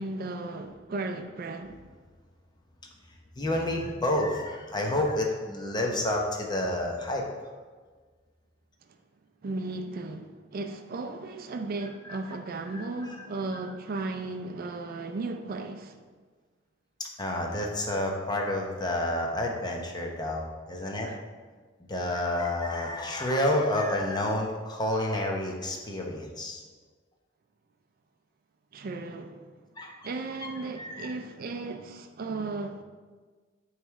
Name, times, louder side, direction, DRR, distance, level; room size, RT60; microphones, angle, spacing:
voice 1, 0.0-1.8 8.9-9.0 9.4-16.0 21.0-21.2 28.7-29.5 30.0-32.8, right 3 dB, 50° right, 0.4 m, -35 dB
voice 2, 3.4-7.2 12.0-12.2 12.7-13.2 17.0-21.1 21.8-26.6 29.8-29.9 30.4-30.5 30.8-31.1, left 1 dB, 20° left, 0.7 m, -29 dB
8.9 x 3.2 x 3.5 m
head